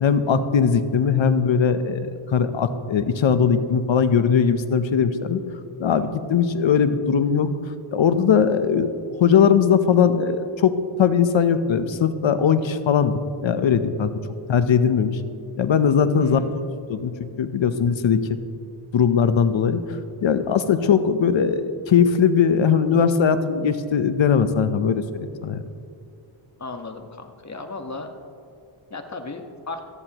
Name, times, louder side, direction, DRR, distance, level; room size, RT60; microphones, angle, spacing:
voice 1, 0.0-5.4 5.8-7.5 7.9-8.9 9.2-14.1 14.5-15.2 15.6-16.4 16.9-17.1 17.4-18.2 18.9-19.8 20.2-25.7, left 7 dB, 65° left, 11 dB, 0.9 m, -20 dB
voice 2, 16.2-16.5 26.6-28.1 28.9-29.8, left 3 dB, 35° left, 5 dB, 1.4 m, -35 dB
18.0 x 14.0 x 3.0 m, 2.4 s
cardioid pair, 65°, 49 cm